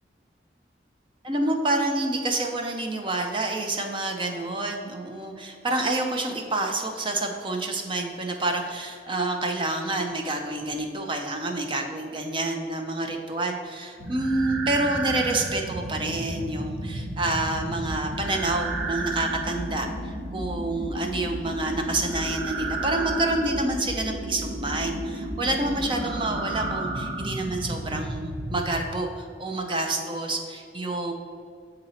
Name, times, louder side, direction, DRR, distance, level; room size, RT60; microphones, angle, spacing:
voice 1, 1.2-19.9 20.3-31.1, right 2 dB, 30° right, 3 dB, 0.6 m, -28 dB
sound 1, 14.0-28.9, right 2 dB, 90° right, 0.9 m, -32 dB
7.1 x 3.9 x 4.2 m, 2.3 s
head